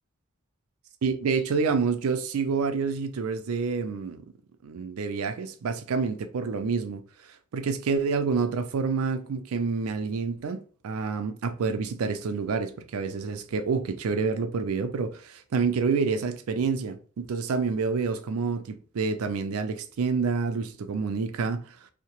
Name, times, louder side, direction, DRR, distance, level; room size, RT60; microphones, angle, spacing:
voice 1, 1.0-4.2 4.6-7.0 7.5-21.8, right 5 dB, 85° right, 0.4 m, -28 dB
2.8 x 2.0 x 2.9 m
head